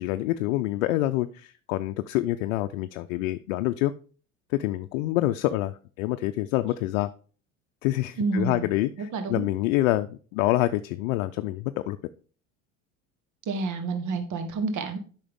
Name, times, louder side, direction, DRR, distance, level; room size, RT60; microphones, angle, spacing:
voice 1, 0.0-3.9 4.5-7.1 7.8-12.0, left 16 dB, 80° left, 8 dB, 0.6 m, -26 dB
voice 2, 8.2-8.7 9.0-9.5 13.5-15.0, right 4 dB, 50° right, 8 dB, 1.4 m, -29 dB
8.6 x 5.7 x 3.5 m, 0.40 s
hypercardioid pair, 80°, 39 cm